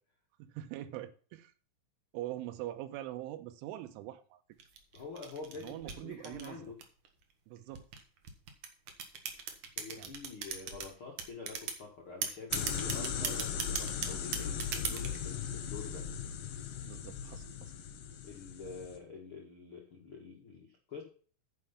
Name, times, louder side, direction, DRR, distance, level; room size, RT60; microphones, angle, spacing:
voice 1, 0.4-1.5 2.1-4.4 5.6-6.7 7.5-7.9 10.0-10.1 16.8-17.7, right 14 dB, 85° right, 3.3 m, -43 dB
sound 1, 4.6-7.1 7.7-10.9 11.2-11.8 12.2-15.2, right 7 dB, 60° right, 2.1 m, -37 dB
voice 2, 4.9-6.8 9.3-9.4 9.8-16.1 18.2-21.0, left 4 dB, 80° left, 1.2 m, -47 dB
sound 2, 12.5-19.0, left 7 dB, 65° left, 2.5 m, -38 dB
9.7 x 6.7 x 5.7 m
omnidirectional pair, 5.5 m